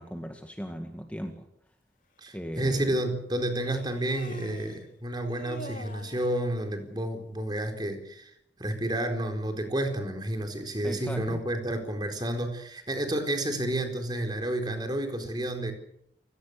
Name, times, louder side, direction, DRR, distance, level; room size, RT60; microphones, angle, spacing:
voice 1, 0.0-1.5 2.3-3.0 10.8-11.4, equal, 10° left, 4 dB, 1.9 m, -37 dB
voice 2, 2.2-8.3 8.6-15.7, right 1 dB, 25° right, 6 dB, 4.2 m, -30 dB
Human voice, 2.3-2.4 3.6-4.8 5.3-6.3, left 1 dB, 45° left, 2.9 m, -43 dB
29.0 x 18.0 x 6.7 m, 0.74 s
head